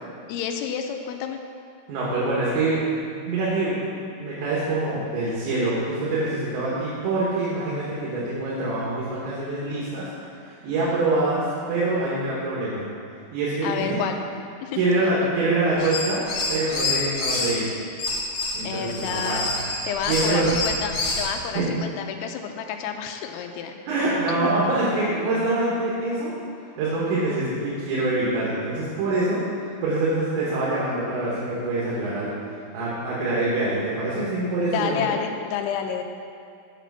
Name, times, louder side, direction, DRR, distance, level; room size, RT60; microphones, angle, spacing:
voice 1, 0.3-1.4 13.6-14.2 14.6-14.8 15.2-15.3 18.6-19.5 19.9-23.7 24.4-24.5 34.7-36.0, left 7 dB, 90° left, 5 dB, 3.0 m, -29 dB
voice 2, 1.9-3.8 4.2-10.1 10.5-12.8 13.3-14.0 14.8-16.2 16.5-17.7 18.5-19.7 20.0-20.5 21.6-21.7 23.9-26.3 26.8-29.4 29.8-32.3 32.7-35.1, right 2 dB, 75° right, -7 dB, 3.6 m, -25 dB
sound 1, 15.7-17.5 18.0-21.3, left 3 dB, 55° left, 3.1 m, -27 dB
8.9 x 5.0 x 6.8 m, 2.3 s
omnidirectional pair, 5.3 m